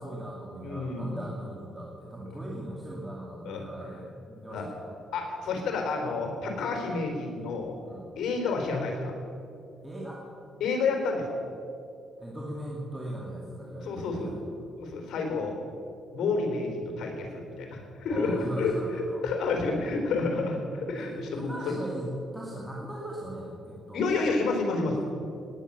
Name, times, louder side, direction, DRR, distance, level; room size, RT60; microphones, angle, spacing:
voice 1, 0.0-4.9 7.8-8.0 9.8-10.2 12.2-14.4 18.1-19.2 21.0-24.2, right 1 dB, 10° right, -4 dB, 2.6 m, -39 dB
voice 2, 0.6-1.2 3.5-3.6 4.5-4.6 5.1-7.8 8.2-9.1 10.6-11.2 13.8-14.3 14.8-15.6 16.1-21.8 23.9-25.0, left 3 dB, 75° left, 2 dB, 3.7 m, -29 dB
19.0 x 9.9 x 6.9 m, 2.6 s
cardioid pair, 90°, 0 cm